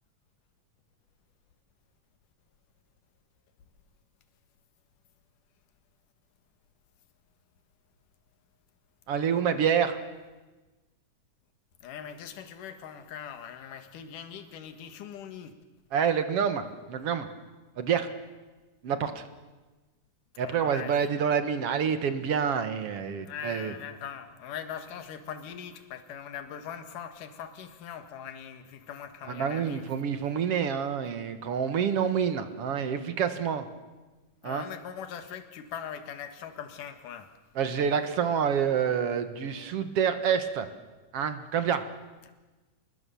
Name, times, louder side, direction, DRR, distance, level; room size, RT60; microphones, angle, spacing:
voice 1, 9.1-10.0 15.9-17.3 17.8-18.1 18.8-19.2 20.4-23.7 29.3-33.7 34.4-34.7 37.6-40.7 41.1-41.9, right 7 dB, 55° right, 9 dB, 2.0 m, -27 dB
voice 2, 11.8-15.5 20.3-21.2 23.2-29.9 34.4-37.3 42.3-42.4, left 8 dB, 80° left, 8 dB, 3.1 m, -41 dB
27.0 x 20.5 x 7.0 m, 1.2 s
omnidirectional pair, 3.8 m